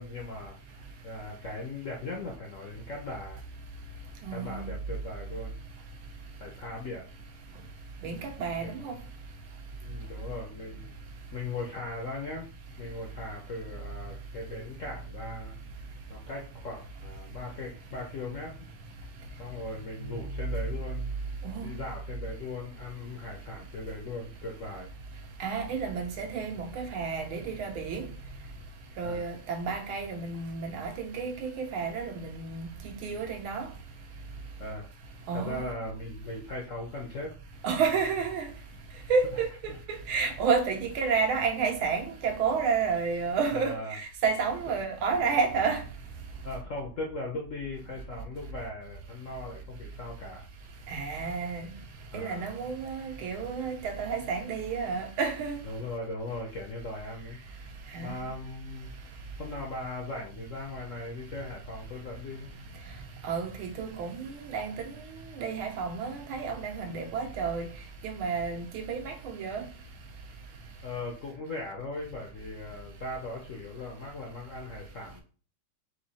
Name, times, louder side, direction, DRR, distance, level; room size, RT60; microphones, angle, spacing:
voice 1, 0.0-3.4 4.3-5.6 6.4-7.1 8.6-8.8 9.8-10.9 11.3-12.5 12.8-15.5 16.1-18.7 19.4-21.1 21.6-24.9 29.0-29.3 34.6-34.9 35.3-37.3 39.7-39.8 43.5-44.0 46.4-50.5 52.1-52.5 55.6-57.4 58.0-58.9 59.4-62.5 68.5-68.6 70.8-75.2, left 2 dB, 60° left, 0.8 m, -39 dB
voice 2, 4.3-4.7 8.0-8.9 21.4-21.7 25.4-28.1 29.0-33.7 35.3-35.7 37.6-38.5 39.1-39.7 40.1-45.8 50.9-51.7 52.1-55.6 57.9-58.2 63.2-64.9 65.4-67.7 68.0-69.6, right 5 dB, 80° right, 1.7 m, -30 dB
4.7 x 2.7 x 4.1 m
omnidirectional pair, 2.3 m